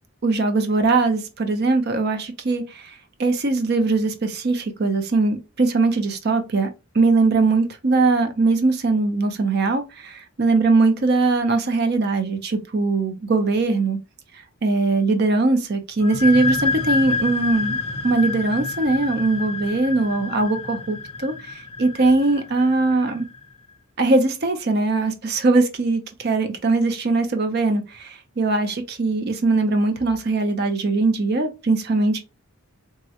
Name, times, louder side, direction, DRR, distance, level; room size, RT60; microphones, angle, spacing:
voice 1, 0.2-2.9 3.2-6.7 6.9-14.0 14.6-23.3 24.0-32.2, right 3 dB, 45° right, 0.5 m, -21 dB
sound 1, 16.0-23.4, left 4 dB, 25° left, 0.3 m, -28 dB
3.5 x 2.1 x 2.8 m
head